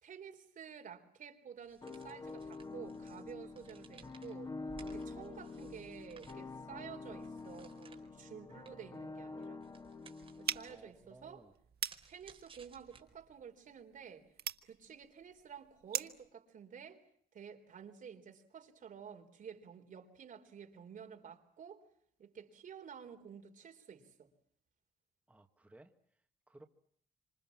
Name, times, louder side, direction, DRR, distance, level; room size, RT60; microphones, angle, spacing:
voice 1, 0.0-4.5 4.8-9.6 10.4-11.4 12.1-14.2 14.6-17.0 17.3-21.8 22.2-24.3, right 7 dB, 55° right, 3.8 m, -51 dB
sound 1, 1.6-13.5, right 5 dB, 35° right, 4.4 m, -61 dB
sound 2, 1.8-10.8, left 3 dB, 25° left, 1.8 m, -47 dB
sound 3, 10.4-16.3, right 10 dB, 75° right, 1.3 m, -43 dB
voice 2, 10.7-11.5 25.3-26.7, right 2 dB, 10° right, 1.5 m, -60 dB
27.5 x 26.0 x 7.3 m
wide cardioid pair, 155°, 16 cm